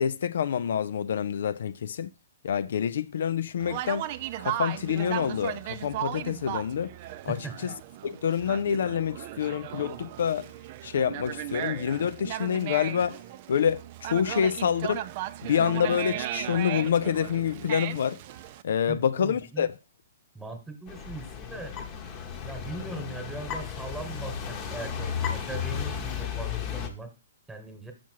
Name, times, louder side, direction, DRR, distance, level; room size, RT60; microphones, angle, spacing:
voice 1, 0.0-2.1 2.4-4.1 4.4-6.9 7.2-7.7 8.0-10.5 10.8-13.2 13.5-15.1 15.4-18.2 18.6-19.7, left 8 dB, 65° left, 0.3 m, -27 dB
Conversation, 3.6-18.6, right 13 dB, 40° right, 0.4 m, -36 dB
voice 2, 7.3-7.7 18.9-19.7 20.3-21.8 22.4-27.1 27.5-27.9, right 2 dB, 5° right, 1.3 m, -40 dB
sound 1, 20.9-26.9, left 7 dB, 25° left, 0.9 m, -34 dB
6.0 x 5.8 x 4.6 m
hypercardioid pair, 150°, 0 cm